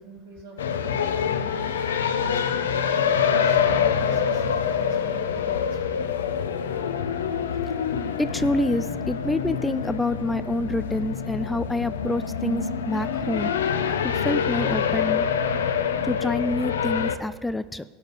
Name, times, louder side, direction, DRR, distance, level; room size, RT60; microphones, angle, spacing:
voice 1, 0.0-1.6 2.2-6.1, right 3 dB, 85° right, -5 dB, 4.3 m, -44 dB
sound 1, 0.6-17.2, left 7 dB, 85° left, 0.7 m, -25 dB
voice 2, 8.2-13.5 14.2-15.3 16.0-17.8, left 2 dB, 10° left, 14 dB, 0.4 m, -27 dB
19.0 x 7.1 x 4.0 m, 1.4 s
hypercardioid pair, 90°, 0 cm